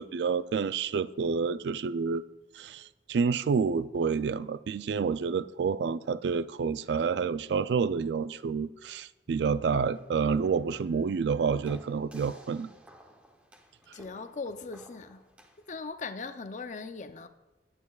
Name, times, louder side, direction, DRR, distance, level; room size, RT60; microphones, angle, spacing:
voice 1, 0.0-2.2 2.5-12.7, right 5 dB, 70° right, 0.3 m, -29 dB
sound 1, 9.9-15.8, right 1 dB, 5° right, 0.8 m, -54 dB
voice 2, 13.9-15.3 15.7-17.3, left 4 dB, 45° left, 0.5 m, -39 dB
17.5 x 9.2 x 2.4 m
head